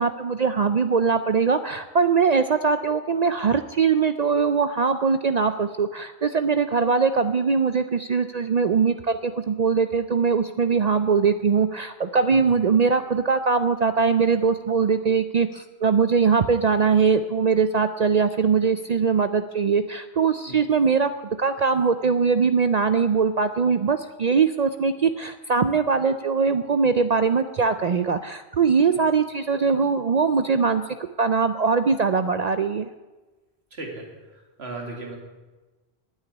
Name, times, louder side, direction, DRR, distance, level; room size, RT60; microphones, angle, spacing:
voice 1, 0.0-30.8 31.2-32.9, right 5 dB, 50° right, 9 dB, 0.5 m, -21 dB
voice 2, 33.7-35.2, right 2 dB, 75° right, 1 dB, 2.8 m, -36 dB
9.1 x 9.1 x 9.9 m, 1.2 s
omnidirectional pair, 1.1 m